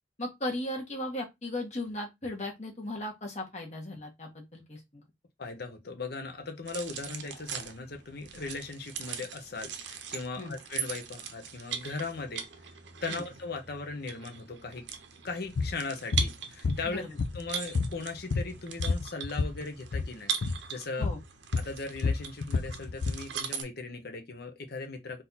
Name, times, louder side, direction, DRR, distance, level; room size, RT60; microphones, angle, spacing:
voice 1, 0.2-5.0 10.4-10.5 13.1-13.2 16.8-17.2 21.0-21.2, left 1 dB, 40° left, 1.6 m, -37 dB
voice 2, 5.4-12.4 13.0-14.8 15.2-17.0 17.3-20.3 20.7-21.1 21.6-25.2, left 3 dB, 60° left, 1.0 m, -38 dB
sound 1, 6.7-23.6, right 7 dB, 80° right, 0.7 m, -40 dB
sound 2, 15.6-15.7 16.1-16.3 16.6-17.5 17.7-19.6 19.9-20.1 20.4-20.6 21.0-21.2 21.5-23.2, left 4 dB, 85° left, 0.5 m, -29 dB
3.9 x 2.8 x 4.0 m
head